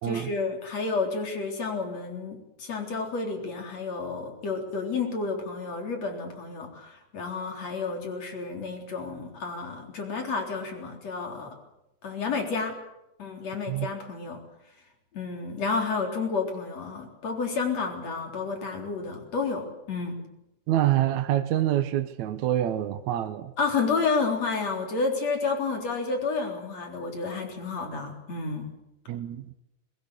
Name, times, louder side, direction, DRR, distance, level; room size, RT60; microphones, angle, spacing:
voice 1, 0.0-11.5 12.0-12.8 13.2-14.4 15.1-20.2 23.6-28.7, left 4 dB, 60° left, 4.9 m, -30 dB
voice 2, 20.7-23.5 29.1-29.5, right 12 dB, 75° right, 2.3 m, -26 dB
22.0 x 20.5 x 8.2 m
omnidirectional pair, 3.5 m